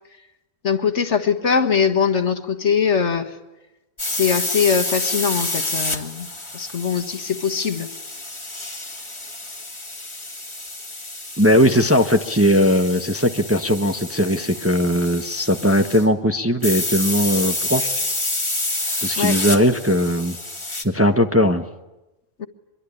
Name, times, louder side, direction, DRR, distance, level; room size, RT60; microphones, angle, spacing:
voice 1, 0.6-3.3 4.1-6.3 6.5-7.9 19.1-19.4 22.4-22.5, left 6 dB, 55° left, 7 dB, 1.7 m, -21 dB
sound 1, 4.0-16.1 16.6-20.8, left 2 dB, 20° left, 2.1 m, -29 dB
voice 2, 11.4-17.9 19.0-20.4 20.8-21.6, equal, 10° right, 5 dB, 1.1 m, -19 dB
24.5 x 23.0 x 10.0 m, 1.0 s
omnidirectional pair, 1.4 m